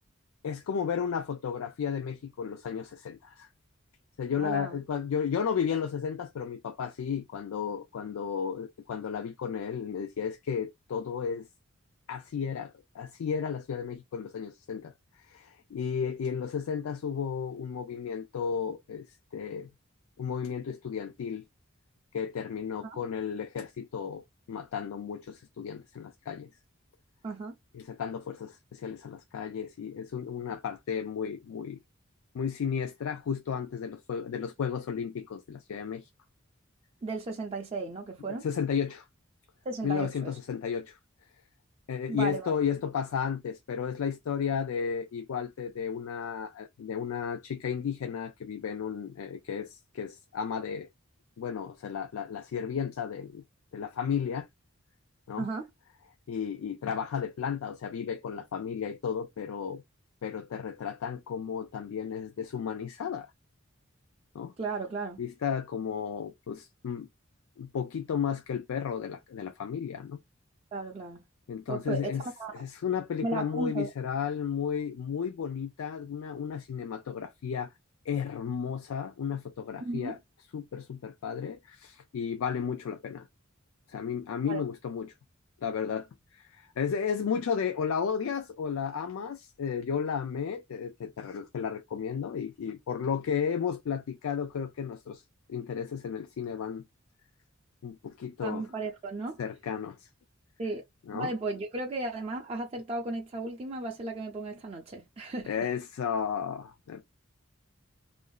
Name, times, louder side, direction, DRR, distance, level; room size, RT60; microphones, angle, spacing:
voice 1, 0.4-3.5 4.2-11.5 12.1-14.9 15.3-19.1 19.3-19.7 20.2-21.4 22.1-26.5 27.7-31.8 32.3-36.1 38.3-39.1 39.8-41.0 41.9-50.9 51.4-53.4 53.7-54.5 55.3-55.5 56.3-59.8 60.2-63.3 64.3-64.5 65.2-67.1 67.6-70.2 71.5-72.2 72.5-77.7 78.1-80.2 80.5-83.3 83.9-85.1 85.6-86.1 86.3-95.2 95.5-96.8 97.8-98.6 99.4-100.1 101.1-101.3 105.5-107.0, left 7 dB, 80° left, 0.4 m, -33 dB
voice 2, 4.4-4.8 22.8-23.0 27.2-27.6 37.0-38.5 39.7-40.3 42.1-42.6 55.4-55.7 64.6-65.2 70.7-71.2 71.7-72.6 73.2-73.9 79.8-80.2 84.5-84.6 98.4-99.4 100.6-100.8 101.1-105.5, right 3 dB, 30° right, 0.4 m, -35 dB
2.9 x 2.5 x 2.2 m
head